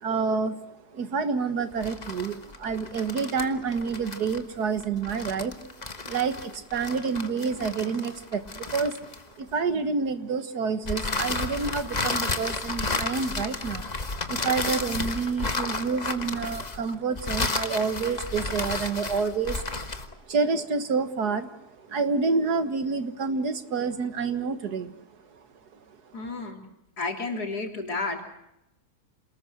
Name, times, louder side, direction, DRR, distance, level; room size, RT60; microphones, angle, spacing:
voice 1, 0.0-5.6 6.0-8.9 9.4-13.9 14.3-25.0 25.3-25.4, right 5 dB, 85° right, 10 dB, 2.1 m, -28 dB
sound 1, 1.7-9.5 10.9-20.1, left 3 dB, 30° left, 1.4 m, -32 dB
voice 2, 26.1-26.7 27.0-28.2, left 3 dB, 85° left, 2 dB, 4.0 m, -31 dB
28.0 x 20.0 x 6.3 m, 0.87 s
omnidirectional pair, 1.7 m